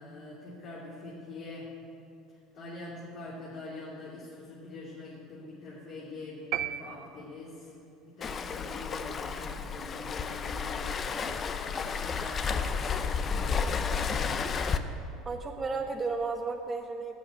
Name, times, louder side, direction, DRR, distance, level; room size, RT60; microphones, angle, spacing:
voice 1, 0.0-1.7 2.5-7.7 8.1-14.6 15.5-15.6, left 2 dB, 60° left, -6 dB, 2.9 m, -44 dB
sound 1, 6.5-7.8, right 12 dB, 55° right, 0.5 m, -35 dB
Waves surf, 8.2-14.8, left 6 dB, 35° left, 0.8 m, -32 dB
voice 2, 15.2-17.1, right 4 dB, 25° right, 3 dB, 1.0 m, -33 dB
12.0 x 8.7 x 9.6 m, 2.6 s
hypercardioid pair, 70°, 0 cm